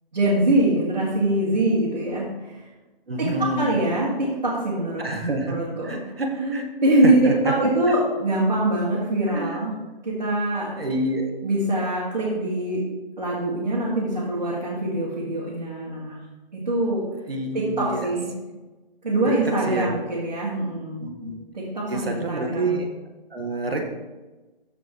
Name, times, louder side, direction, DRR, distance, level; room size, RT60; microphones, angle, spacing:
voice 1, 0.1-2.5 3.2-3.3 3.6-5.0 5.4-6.0 6.4-9.8 10.0-10.7 11.4-12.8 13.2-16.2 16.5-17.0 17.5-18.3 19.0-21.0 21.5-22.7, right 1 dB, 50° right, -7 dB, 2.6 m, -23 dB
voice 2, 3.1-3.7 5.0-6.7 7.0-7.3 9.3-9.6 10.8-11.3 17.3-18.1 19.2-19.3 19.7-19.9 21.0-21.4 21.9-22.9 23.3-23.8, right 2 dB, 85° right, 3 dB, 1.8 m, -27 dB
14.0 x 5.1 x 3.2 m, 1.2 s
hypercardioid pair, 175°, 29 cm